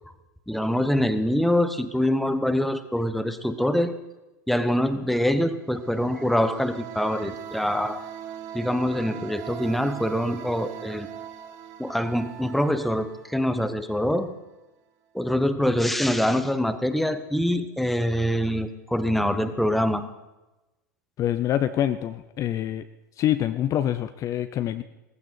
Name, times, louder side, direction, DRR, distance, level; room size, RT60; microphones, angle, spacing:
voice 1, 0.5-4.0 4.5-8.0 8.5-11.1 11.8-14.3 15.1-20.0, equal, ahead, 10 dB, 1.1 m, -24 dB
sound 1, 5.6-14.2, right 9 dB, 40° right, 1.3 m, -40 dB
voice 2, 21.2-22.8 23.2-24.8, left 11 dB, 30° left, 11 dB, 0.6 m, -25 dB
17.5 x 15.0 x 4.5 m, 1.1 s
hypercardioid pair, 95°, 10 cm